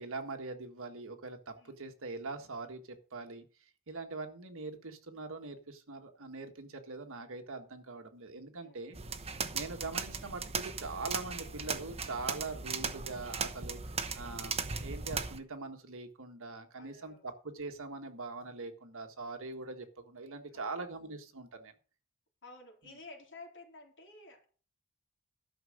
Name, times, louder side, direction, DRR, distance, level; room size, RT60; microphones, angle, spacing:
voice 1, 0.0-3.4 3.9-21.7, right 3 dB, 65° right, 6 dB, 1.6 m, -43 dB
sound 1, 8.9-15.4, right 5 dB, 30° right, 1.0 m, -38 dB
voice 2, 16.7-17.3 20.5-20.7 22.4-24.5, left 3 dB, 55° left, 0 dB, 4.0 m, -53 dB
12.5 x 6.3 x 6.5 m, 0.39 s
head